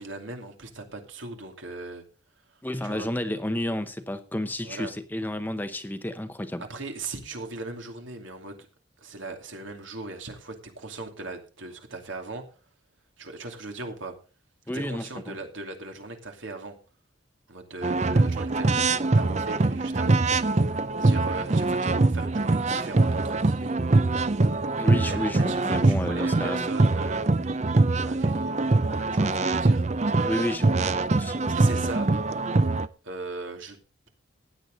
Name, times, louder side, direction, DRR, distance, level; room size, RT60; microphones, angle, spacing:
voice 1, 0.0-2.0 2.8-3.1 4.6-4.9 6.6-8.7 9.0-12.5 13.2-14.2 14.7-16.8 17.5-20.2 20.6-20.7 21.0-23.7 25.0-27.6 28.0-29.8 31.5-32.1 33.0-33.8, right 3 dB, 80° right, 2.7 m, -39 dB
voice 2, 2.6-6.6 14.7-15.4 24.8-26.7 30.2-31.4, left 1 dB, 10° left, 0.8 m, -31 dB
sound 1, 17.8-32.9, right 2 dB, 35° right, 0.5 m, -23 dB
15.5 x 9.7 x 3.9 m
head